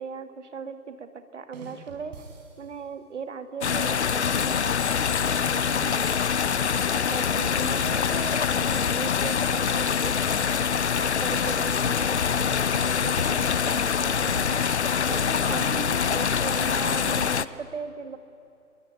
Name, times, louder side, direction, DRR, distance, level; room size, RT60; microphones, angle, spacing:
voice 1, 0.0-2.2 2.6-5.0 5.4-6.2 6.7-10.6 11.0-14.7 15.1-18.2, right 6 dB, 50° right, 9 dB, 2.3 m, -38 dB
sound 1, 1.5-2.9 5.2-7.2 9.3-11.5 13.7-15.3, right 4 dB, 30° right, 4.5 m, -47 dB
sound 2, 3.6-17.4, left 7 dB, 50° left, 0.9 m, -24 dB
29.5 x 22.5 x 9.0 m, 2.8 s
figure-of-eight pair, 155°, 43 cm